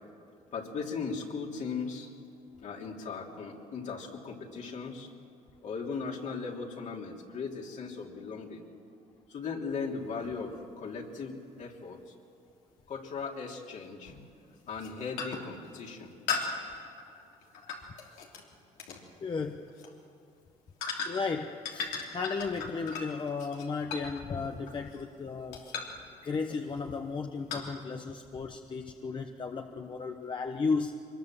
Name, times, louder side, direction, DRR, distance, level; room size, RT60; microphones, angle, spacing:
voice 1, 0.5-2.1 2.6-5.1 5.6-8.6 9.3-12.1 12.9-14.1 14.7-16.1, left 5 dB, 60° left, 0 dB, 3.1 m, -38 dB
sound 1, 10.2-10.3 12.8-12.9 14.1-14.3 14.7-14.9 15.2-15.6 16.3-18.4 18.8-19.0 19.7-19.9 20.8-21.4 21.6-25.2 25.5-26.0 26.5-26.8 27.5-27.6, left 5 dB, 85° left, 3.1 m, -37 dB
voice 2, 19.2-19.7 21.0-25.6 26.2-31.0, left 4 dB, 35° left, 4 dB, 1.2 m, -34 dB
24.0 x 21.0 x 7.5 m, 2.4 s
cardioid pair, 90°, 14 cm